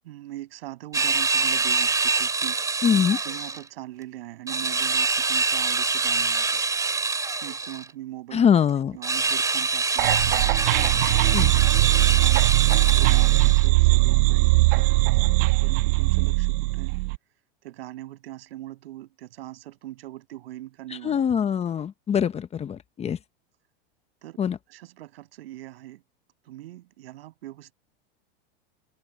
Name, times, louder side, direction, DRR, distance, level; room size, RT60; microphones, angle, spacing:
voice 1, 0.0-2.6 3.2-6.7 7.4-8.6 8.9-10.7 10.9-17.0 17.6-21.2 24.2-24.4 24.7-26.0 26.4-27.7, right 15 dB, 85° right, 7.0 m, -41 dB
sound 1, 0.9-3.6 4.5-7.9 9.0-13.7, right 4 dB, 10° right, 3.9 m, -25 dB
voice 2, 2.8-3.2 8.3-9.0 11.3-11.5 21.0-23.2 24.4-24.6, left 8 dB, 20° left, 1.0 m, -23 dB
sound 2, 10.0-17.2, right 23 dB, 65° right, 1.5 m, -20 dB
supercardioid pair, 130°, 29 cm